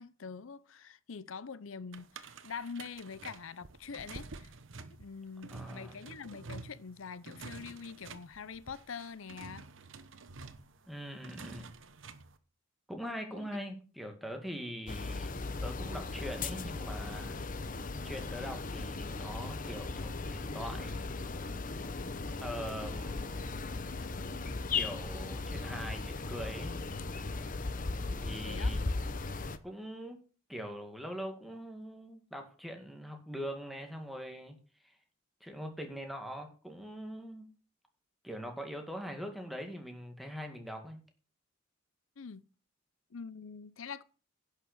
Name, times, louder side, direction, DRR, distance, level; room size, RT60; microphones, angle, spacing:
voice 1, 0.0-4.5 5.0-9.7 13.4-13.5 28.4-28.7 42.2-42.5 43.1-44.0, left 5 dB, 75° left, 0.6 m, -44 dB
sound 1, 1.9-12.4, right 4 dB, 65° right, 1.1 m, -49 dB
voice 2, 5.5-6.0 10.9-11.7 12.9-15.3 15.6-17.4 18.0-21.2 22.4-23.5 24.7-26.7 28.2-29.0 29.6-30.2 30.5-34.6 34.8-35.0 35.4-37.5 38.2-41.0, equal, ahead, 2.1 m, -42 dB
sound 2, 14.9-29.6, left 3 dB, 40° left, 0.9 m, -37 dB
11.0 x 6.7 x 6.8 m
head